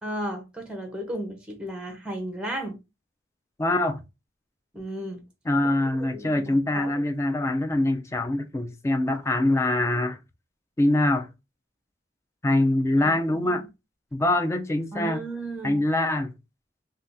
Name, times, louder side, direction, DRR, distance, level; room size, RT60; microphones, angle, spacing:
voice 1, 0.0-2.8 4.7-5.2 6.1-6.9 13.0-13.6 14.9-15.8, right 1 dB, 5° right, 0.7 m, -34 dB
voice 2, 3.6-4.0 5.5-10.2 10.8-11.3 12.4-13.7 14.1-15.2 15.6-16.3, left 1 dB, 15° left, 0.3 m, -24 dB
2.6 x 2.3 x 3.4 m
head